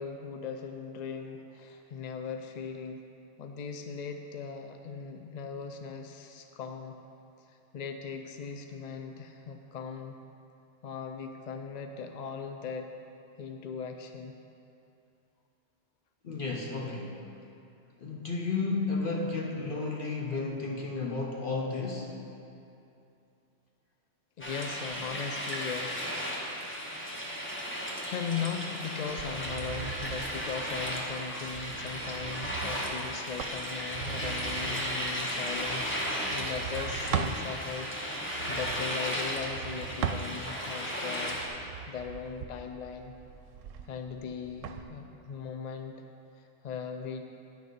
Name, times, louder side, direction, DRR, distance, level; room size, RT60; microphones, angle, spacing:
voice 1, 0.0-3.1 3.4-7.0 7.5-10.2 10.8-12.9 13.4-14.3 24.4-26.1 26.6-27.0 27.9-37.9 38.5-41.4 41.9-43.1 43.9-45.9 46.4-47.3, left 6 dB, 65° left, 5 dB, 0.4 m, -39 dB
voice 2, 16.2-17.1 18.0-22.1, left 3 dB, 50° left, -1 dB, 0.9 m, -32 dB
sound 1, 24.4-41.5, equal, 10° left, 1.1 m, -35 dB
sound 2, 29.1-37.4 38.2-40.7 41.2-44.8, right 7 dB, 85° right, 0.9 m, -40 dB
9.9 x 6.5 x 5.2 m, 2.7 s
omnidirectional pair, 1.3 m